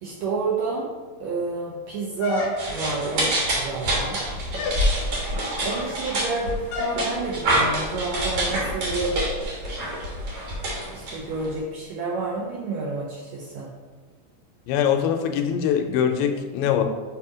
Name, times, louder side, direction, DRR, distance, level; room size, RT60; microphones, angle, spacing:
voice 1, 0.0-0.9 1.2-4.2 5.6-9.2 10.9-13.7, right 3 dB, 80° right, -4 dB, 1.6 m, -29 dB
sound 1, 2.2-3.0 3.8-4.2 4.6-4.9 6.7-7.0, left 4 dB, 75° left, 2.3 m, -30 dB
sound 2, 2.6-11.6, right 1 dB, 60° right, 1.6 m, -27 dB
voice 2, 14.7-16.8, left 8 dB, 90° left, 5 dB, 2.4 m, -22 dB
7.0 x 2.7 x 4.9 m, 1.3 s
omnidirectional pair, 4.2 m